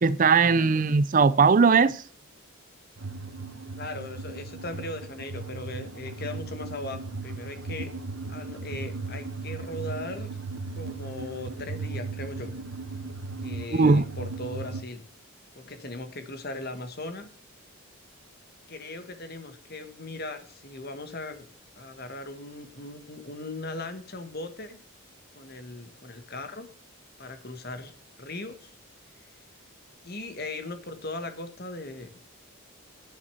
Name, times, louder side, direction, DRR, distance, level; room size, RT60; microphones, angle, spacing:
voice 1, 0.0-2.0 13.7-14.0, right 4 dB, 40° right, 0.4 m, -19 dB
sound 1, 3.0-14.8, right 3 dB, 65° right, 0.9 m, -37 dB
voice 2, 3.8-7.9 8.3-10.4 10.7-12.5 13.4-15.0 15.5-17.3 18.7-21.4 21.8-24.8 25.3-26.7 27.2-27.9 28.2-28.7 29.2-29.3 30.0-32.2, left 2 dB, 45° left, 1.5 m, -38 dB
10.5 x 6.6 x 6.9 m
head